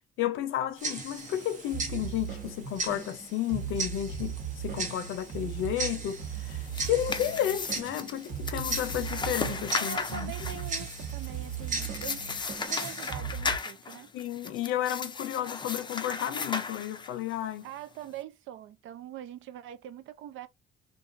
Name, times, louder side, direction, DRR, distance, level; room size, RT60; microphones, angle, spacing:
voice 1, 0.2-10.6 14.1-17.7, left 11 dB, 85° left, 0.6 m, -32 dB
Tick-tock, 0.8-13.1, right 3 dB, 40° right, 0.9 m, -39 dB
sound 1, 1.7-13.6, right 8 dB, 60° right, 1.3 m, -38 dB
sound 2, 6.5-17.4, left 4 dB, 25° left, 0.4 m, -36 dB
voice 2, 9.8-12.3 12.7-14.1 17.6-20.5, right 11 dB, 80° right, 0.4 m, -43 dB
2.6 x 2.3 x 2.5 m
cardioid pair, 90°, 20 cm